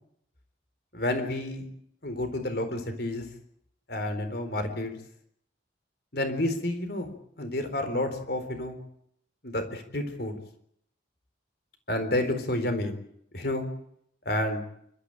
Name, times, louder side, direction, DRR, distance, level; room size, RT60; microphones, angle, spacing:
voice 1, 0.9-1.7 2.0-3.3 3.9-4.9 6.1-7.1 7.4-8.8 9.4-10.4 11.9-12.9 13.3-13.7 14.3-14.6, left 1 dB, 55° left, 7 dB, 4.1 m, -30 dB
28.5 x 13.5 x 9.1 m, 0.70 s
head